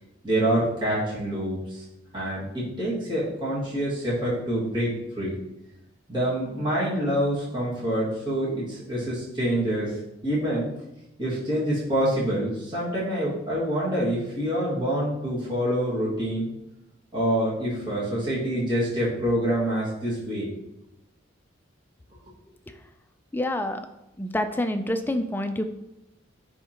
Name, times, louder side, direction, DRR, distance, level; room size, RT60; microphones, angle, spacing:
voice 1, 0.2-1.8 2.1-5.4 6.1-10.0 10.2-10.7 11.2-16.5 17.1-20.5, right 1 dB, 25° right, -9 dB, 2.0 m, -26 dB
voice 2, 23.3-23.8 24.2-25.6, left 1 dB, 10° left, 7 dB, 0.3 m, -27 dB
9.6 x 3.6 x 2.9 m, 0.90 s
head